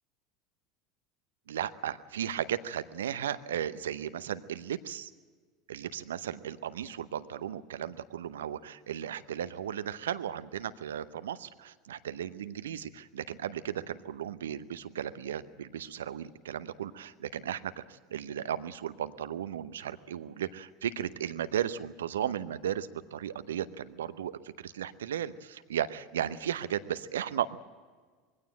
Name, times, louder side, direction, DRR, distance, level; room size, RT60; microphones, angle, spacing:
voice 1, 1.5-5.1 5.7-27.6, right 10 dB, 75° right, 14 dB, 0.8 m, -35 dB
21.5 x 16.5 x 8.8 m, 1.5 s
figure-of-eight pair, 75°, 0 cm